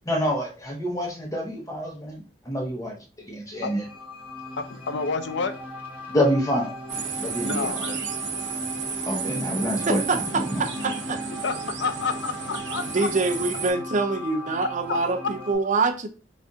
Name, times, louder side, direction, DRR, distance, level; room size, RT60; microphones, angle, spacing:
voice 1, 0.1-2.9 3.3-3.8 6.1-6.7 7.2-7.9 9.1-10.6, equal, 20° left, 0.9 m, -27 dB
sound 1, 3.5-15.5, equal, 10° right, 1.1 m, -38 dB
voice 2, 4.6-5.5 7.4-8.0 11.4-11.5 11.8-13.1 14.9-15.0, left 4 dB, 80° left, 0.5 m, -29 dB
sound 2, 6.9-13.7, right 5 dB, 80° right, 0.7 m, -33 dB
voice 3, 9.9-11.2 12.8-16.1, right 3 dB, 45° right, 0.6 m, -25 dB
4.0 x 2.5 x 3.6 m
head